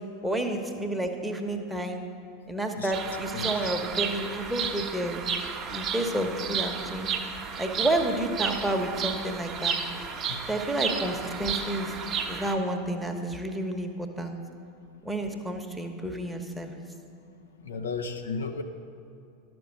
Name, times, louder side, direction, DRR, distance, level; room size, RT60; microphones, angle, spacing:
voice 1, 0.2-2.0 2.5-5.2 5.7-7.1 7.6-9.8 10.5-11.9 12.3-14.4 15.0-16.8, right 1 dB, ahead, 2 dB, 1.0 m, -30 dB
Bird vocalization bird call bird song, 2.9-12.6, right 6 dB, 30° right, 1.0 m, -32 dB
voice 2, 3.3-3.7 10.3-10.4 17.6-18.6, left 4 dB, 70° left, 6 dB, 0.7 m, -34 dB
11.5 x 6.1 x 6.5 m, 2.6 s
figure-of-eight pair, 85°, 0 cm